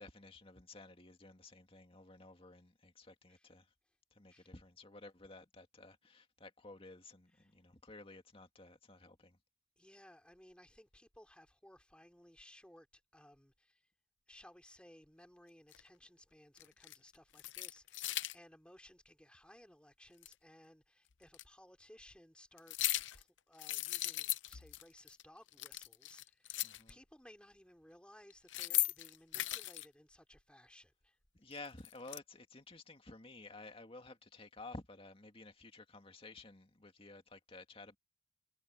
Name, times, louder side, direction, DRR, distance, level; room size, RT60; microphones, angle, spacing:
voice 1, 0.0-3.7 4.1-9.4 26.6-27.0 31.3-38.0, left 2 dB, 30° left, 2.3 m, -53 dB
voice 2, 9.8-13.8 14.3-26.6 26.9-31.2, left 1 dB, 5° left, 3.5 m, -61 dB
sound 1, 15.7-15.8 16.6-17.0 17.3-18.4 20.2-20.3 21.3-21.4 22.6-23.2 23.6-24.8 25.1-25.2 25.5-26.9 28.3-29.9 31.5-32.2, left 16 dB, 70° left, 0.7 m, -38 dB
head